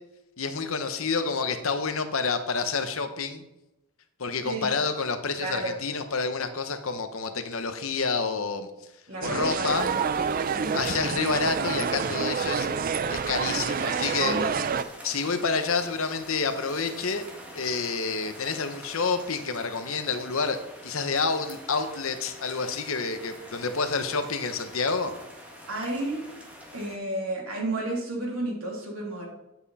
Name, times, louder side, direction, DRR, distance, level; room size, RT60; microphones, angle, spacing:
voice 1, 0.4-3.4 4.2-8.7 9.2-9.9 10.7-12.7 13.1-14.6 15.0-17.3 17.5-20.6 20.8-25.1, left 4 dB, 65° left, 8 dB, 1.0 m, -28 dB
voice 2, 5.4-5.8 9.1-10.0 10.5-10.8 14.2-14.6 25.7-26.2 26.7-29.3, right 1 dB, 70° right, -2 dB, 3.0 m, -32 dB
sound 1, 9.2-14.8, right 6 dB, 40° right, 0.4 m, -28 dB
sound 2, 9.7-27.0, equal, 5° right, 1.8 m, -45 dB
10.0 x 8.0 x 4.2 m, 0.93 s
head